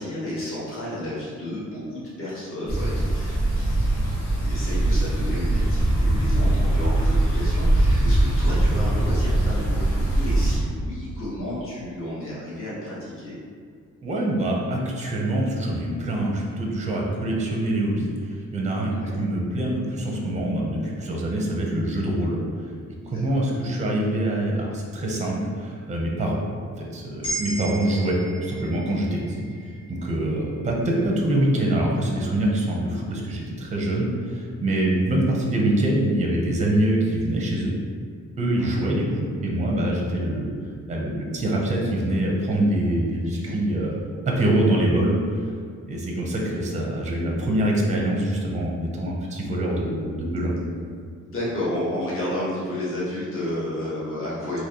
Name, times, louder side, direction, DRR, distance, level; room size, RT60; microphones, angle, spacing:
voice 1, 0.0-13.4 18.8-19.2 23.0-23.2 38.5-38.8 43.2-43.5 51.2-54.6, left 1 dB, 45° left, -8 dB, 1.1 m, -32 dB
sound 1, 2.7-10.6, right 1 dB, 75° left, 1.5 m, -21 dB
voice 2, 14.0-22.4 23.1-26.4 26.8-29.4 29.9-37.7 38.4-40.5 40.9-44.0 44.3-45.4 45.9-50.5, right 1 dB, 25° right, -2 dB, 0.6 m, -24 dB
sound 2, 27.2-31.5, right 2 dB, 15° left, 1.2 m, -37 dB
3.8 x 2.9 x 2.8 m, 2.1 s
wide cardioid pair, 140°, 31 cm